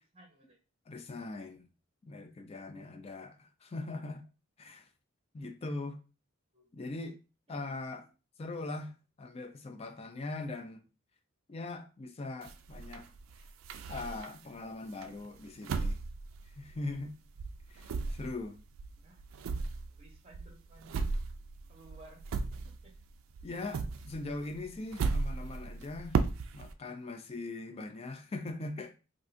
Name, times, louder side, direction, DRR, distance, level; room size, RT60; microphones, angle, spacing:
voice 1, 0.1-0.6 2.7-2.9 6.5-6.7 7.5-7.6 19.0-19.2 19.5-21.0 21.7-22.4 22.7-22.9, right 2 dB, 30° right, 0.8 m, -57 dB
voice 2, 0.9-1.7 2.1-4.3 4.6-4.9 5.3-6.0 6.7-7.2 7.5-8.1 8.4-10.9 11.5-13.1 13.9-16.0 16.5-17.2 17.7-18.6 23.4-26.3 26.5-29.0, left 2 dB, 30° left, 0.3 m, -41 dB
sound 1, 12.4-14.6 15.0-17.1 17.4-23.1 23.3-26.7, right 4 dB, 75° right, 0.3 m, -36 dB
3.6 x 2.5 x 2.5 m
head